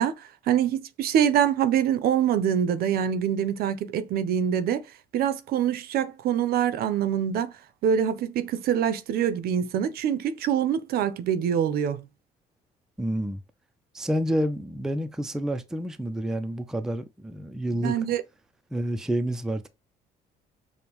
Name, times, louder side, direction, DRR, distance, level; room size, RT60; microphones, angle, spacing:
voice 1, 0.0-4.8 5.1-7.5 7.8-12.1 17.7-18.2, right 9 dB, 65° right, 0.5 m, -25 dB
voice 2, 13.0-13.4 13.9-17.9 18.7-19.7, equal, 5° right, 0.3 m, -29 dB
5.2 x 2.1 x 2.9 m
cardioid pair, 110°, 17 cm